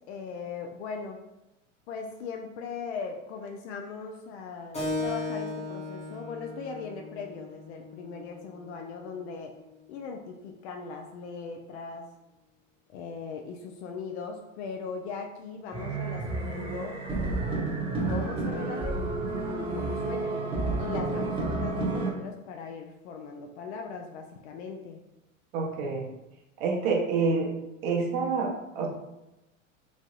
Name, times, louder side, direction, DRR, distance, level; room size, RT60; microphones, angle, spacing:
voice 1, 0.1-1.2 1.9-9.5 9.9-12.1 12.9-17.0 18.0-20.3 20.8-25.0, left 5 dB, 55° left, 3 dB, 0.5 m, -39 dB
Keyboard (musical), 4.7-9.8, left 2 dB, 15° left, 0.9 m, -37 dB
sound 1, 15.7-22.1, right 3 dB, 15° right, 0.9 m, -30 dB
voice 2, 25.5-26.1 26.6-27.5 27.8-28.9, right 4 dB, 55° right, 1 dB, 0.8 m, -27 dB
3.1 x 2.7 x 2.3 m, 0.92 s
hypercardioid pair, 90°, 40 cm